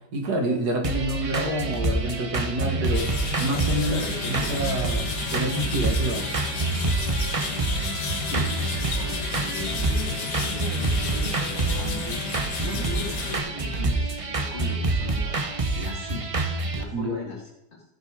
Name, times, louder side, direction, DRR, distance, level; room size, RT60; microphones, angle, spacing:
voice 1, 0.1-3.1 3.4-6.3 16.9-17.2, right 1 dB, 65° right, 1 dB, 2.2 m, -28 dB
sound 1, 0.8-16.8, right 3 dB, 45° right, 0.4 m, -27 dB
sound 2, 2.9-13.4, left 5 dB, 75° left, 1.7 m, -32 dB
voice 2, 3.9-4.8 8.2-17.8, left 3 dB, 40° left, -2 dB, 2.4 m, -38 dB
14.0 x 5.4 x 5.1 m, 0.87 s
omnidirectional pair, 1.8 m